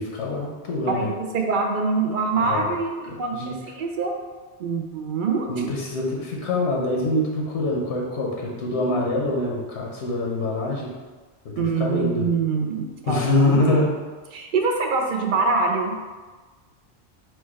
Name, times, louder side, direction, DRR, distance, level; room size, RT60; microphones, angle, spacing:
voice 1, 0.0-1.1 2.4-2.7 3.1-3.6 5.5-10.9 11.4-12.3 13.1-13.9, left 2 dB, 85° left, -2 dB, 1.0 m, -25 dB
voice 2, 0.9-4.1 4.6-5.7 11.6-13.8 14.3-15.9, right 4 dB, 55° right, 2 dB, 0.6 m, -24 dB
4.4 x 2.3 x 4.3 m, 1.3 s
omnidirectional pair, 1.1 m